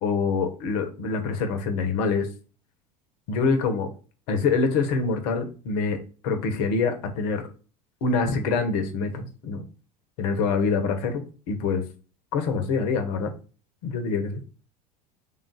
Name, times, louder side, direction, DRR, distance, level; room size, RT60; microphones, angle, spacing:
voice 1, 0.0-2.3 3.3-3.9 4.3-6.0 6.2-7.4 8.0-9.6 10.2-11.8 12.3-13.3 13.8-14.4, left 4 dB, 65° left, 7 dB, 1.0 m, -25 dB
3.6 x 2.6 x 3.9 m, 0.36 s
hypercardioid pair, 85°, 21 cm